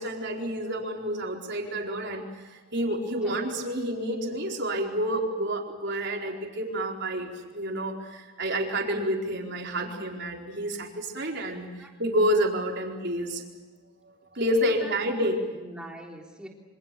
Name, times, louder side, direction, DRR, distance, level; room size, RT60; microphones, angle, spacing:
voice 1, 0.0-2.2 2.7-11.7 12.0-13.4 14.3-15.4, equal, 50° right, 1 dB, 4.4 m, -29 dB
voice 2, 14.6-16.5, right 1 dB, 5° right, 1 dB, 3.3 m, -43 dB
27.0 x 26.0 x 6.9 m, 1.3 s
head